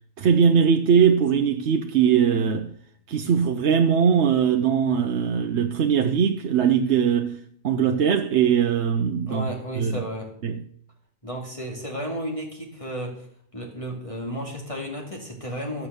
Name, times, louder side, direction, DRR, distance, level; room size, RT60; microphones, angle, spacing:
voice 1, 0.2-2.7 3.1-9.5 9.8-10.0 10.4-10.6, right 7 dB, 75° right, 1.0 m, -21 dB
voice 2, 9.3-10.3 11.2-13.3 13.5-15.9, equal, 30° left, 2.6 m, -33 dB
15.0 x 7.3 x 6.8 m
omnidirectional pair, 1.2 m